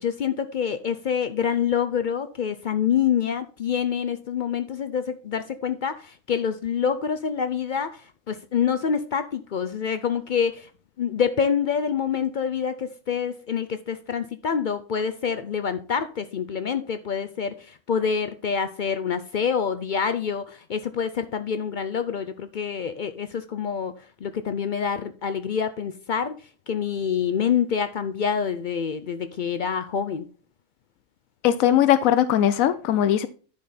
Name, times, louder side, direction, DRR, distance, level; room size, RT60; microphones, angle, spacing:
voice 1, 0.0-10.7 11.0-23.9 24.2-26.3 26.7-30.3, left 7 dB, 60° left, 0.5 m, -26 dB
voice 2, 31.4-33.3, left 11 dB, 85° left, 1.0 m, -19 dB
10.5 x 5.0 x 4.1 m
omnidirectional pair, 1.4 m